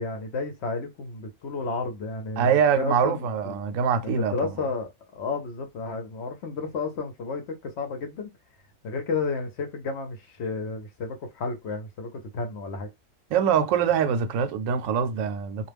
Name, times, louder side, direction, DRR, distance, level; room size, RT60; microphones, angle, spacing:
voice 1, 0.0-3.5 4.0-8.3 8.8-12.9, left 4 dB, 60° left, 0.7 m, -32 dB
voice 2, 2.4-4.3 13.3-15.7, right 7 dB, 70° right, 0.9 m, -24 dB
2.4 x 2.2 x 3.3 m
omnidirectional pair, 1.6 m